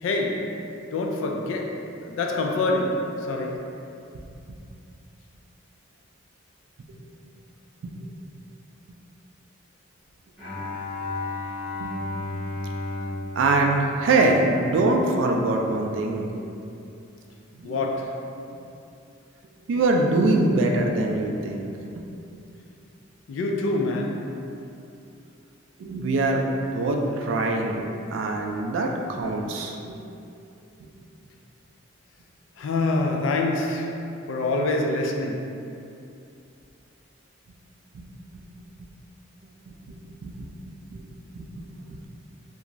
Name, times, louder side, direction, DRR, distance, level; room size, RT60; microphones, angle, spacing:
voice 1, 0.0-3.8 17.6-18.3 23.3-24.4 32.6-35.6, left 2 dB, 70° left, 0.3 m, -26 dB
Bowed string instrument, 10.4-14.8, left 2 dB, 5° right, 0.8 m, -33 dB
voice 2, 13.4-16.6 17.6-17.8 18.4-18.5 19.7-21.7 25.8-26.4 26.7-27.8 28.1-30.0 30.8-30.9 37.9-38.1 39.9-40.5 40.9-41.0 41.4-41.5 41.9-42.0, right 2 dB, 65° right, 0.3 m, -24 dB
2.4 x 2.3 x 2.9 m
head